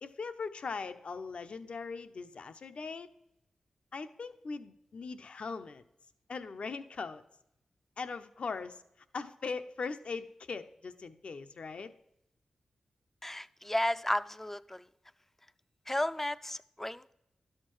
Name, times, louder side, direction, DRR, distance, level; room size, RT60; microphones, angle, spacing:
voice 1, 0.0-3.1 3.9-5.8 6.3-7.2 8.0-8.8 9.1-11.9, left 4 dB, 65° left, 10 dB, 0.5 m, -40 dB
voice 2, 13.2-14.8 15.9-17.1, left 1 dB, 15° left, 15 dB, 0.4 m, -33 dB
11.5 x 6.5 x 3.1 m, 0.83 s
cardioid pair, 40°, 2 cm